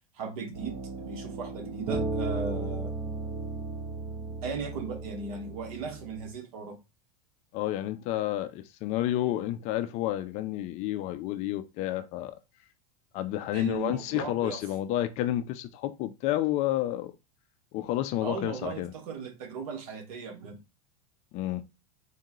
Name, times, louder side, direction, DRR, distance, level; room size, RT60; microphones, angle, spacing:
voice 1, 0.1-2.9 4.4-6.8 13.5-14.6 18.2-20.6, right 5 dB, 75° right, 1.3 m, -37 dB
sound 1, 0.5-6.3, right 3 dB, 35° right, 0.9 m, -35 dB
voice 2, 7.5-12.4 13.1-17.1 17.7-18.9 21.3-21.6, left 13 dB, 40° left, 0.4 m, -30 dB
3.9 x 2.8 x 3.7 m
supercardioid pair, 145°, 19 cm